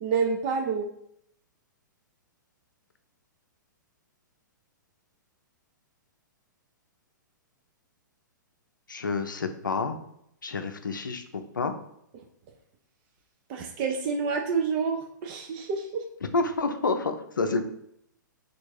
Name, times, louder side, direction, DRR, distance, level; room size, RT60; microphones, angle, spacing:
voice 1, 0.0-0.9 13.5-16.0, right 5 dB, 35° right, 3 dB, 0.4 m, -28 dB
voice 2, 8.9-10.0 10.4-11.2 11.5-11.7 16.3-17.6, left 3 dB, 75° left, 7 dB, 0.5 m, -28 dB
3.4 x 2.5 x 4.5 m, 0.73 s
figure-of-eight pair, 110°, 11 cm